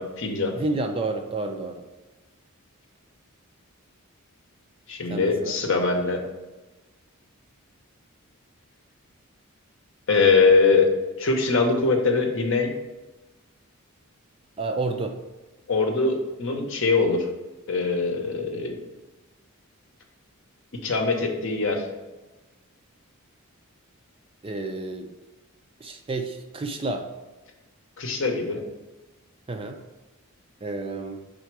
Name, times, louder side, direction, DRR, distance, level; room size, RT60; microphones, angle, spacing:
voice 1, 0.0-0.5 4.9-6.2 10.1-10.9 11.2-12.7 15.7-17.3 17.7-18.8 20.8-21.8 28.0-28.6, left 4 dB, 60° left, 3 dB, 0.9 m, -22 dB
voice 2, 0.6-1.8 5.1-5.6 14.6-15.2 24.4-25.1 25.8-27.1 29.5-29.8 30.6-31.2, right 3 dB, 25° right, 5 dB, 0.4 m, -30 dB
5.5 x 3.8 x 4.7 m, 1.1 s
head